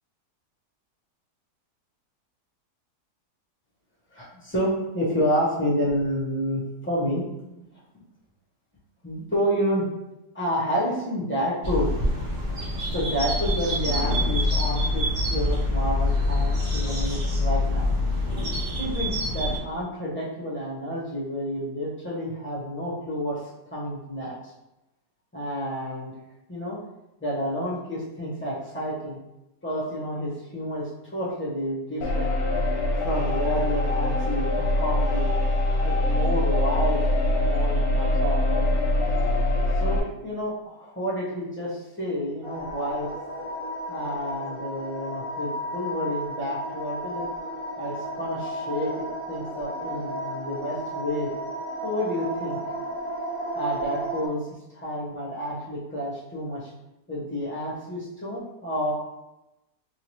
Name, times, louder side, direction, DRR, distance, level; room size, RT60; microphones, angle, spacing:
voice 1, 4.1-7.6 9.0-9.9 10.3-11.9 12.9-17.9 18.8-23.4 23.7-24.3 25.3-26.1 26.5-26.8 27.2-29.2 29.6-32.3 33.0-35.3 35.8-37.0 37.3-38.7 39.8-43.1 43.9-47.3 47.8-51.3 51.8-52.6 53.5-54.4 54.7-56.7 57.1-58.9, equal, 10° left, -7 dB, 0.9 m, -29 dB
sound 1, 11.6-19.6, left 1 dB, 40° right, 0.9 m, -25 dB
sound 2, 32.0-40.0, left 1 dB, 65° left, 1.1 m, -23 dB
sound 3, 42.4-54.3, right 1 dB, 60° right, 1.4 m, -33 dB
3.6 x 2.8 x 3.1 m, 0.93 s
omnidirectional pair, 1.8 m